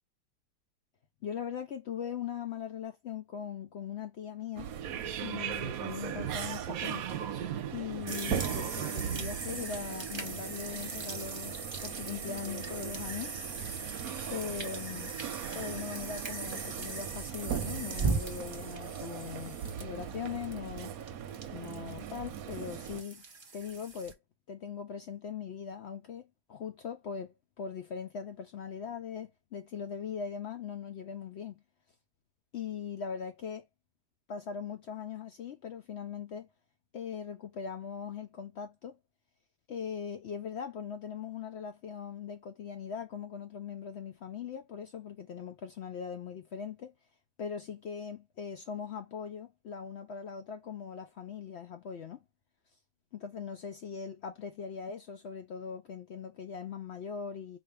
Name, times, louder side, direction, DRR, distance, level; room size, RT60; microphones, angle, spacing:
voice 1, 1.2-4.7 5.2-7.1 7.7-13.3 14.3-15.1 15.5-20.9 21.5-23.2 23.5-24.2 24.5-26.2 26.5-31.6 32.5-33.7 34.3-36.5 36.9-39.0 39.7-46.9 47.4-52.2 53.1-57.6, left 7 dB, 75° left, 0.6 m, -40 dB
sound 1, 4.6-23.0, right 9 dB, 70° right, 1.0 m, -38 dB
sound 2, 8.1-24.1, right 4 dB, 35° right, 0.4 m, -39 dB
4.3 x 2.6 x 3.2 m
omnidirectional pair, 1.7 m